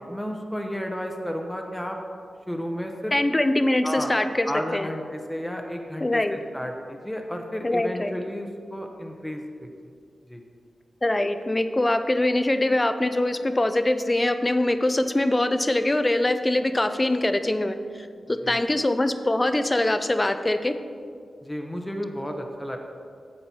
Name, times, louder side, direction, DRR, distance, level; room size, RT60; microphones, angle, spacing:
voice 1, 0.1-2.0 2.5-3.1 3.8-4.1 4.5-9.7 10.3-10.4 18.4-18.6 21.4-22.8, equal, 5° left, 2 dB, 0.9 m, -32 dB
voice 2, 3.1-4.5 4.7-4.9 6.0-6.4 7.6-8.1 11.0-17.8 18.3-20.7, left 1 dB, 20° left, 9 dB, 0.5 m, -23 dB
10.0 x 7.6 x 4.3 m, 2.2 s
wide cardioid pair, 80°, 0 cm